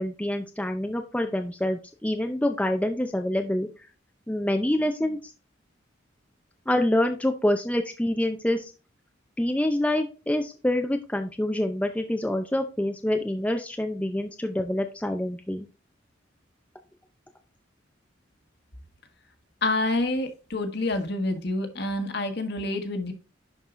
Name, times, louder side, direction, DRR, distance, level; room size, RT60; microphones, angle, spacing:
voice 1, 0.0-3.7 4.3-5.3 6.7-8.7 9.4-15.7, left 1 dB, 5° left, 5 dB, 0.5 m, -26 dB
voice 2, 19.6-23.1, left 2 dB, 55° left, 6 dB, 1.4 m, -27 dB
11.0 x 4.6 x 2.5 m, 0.32 s
head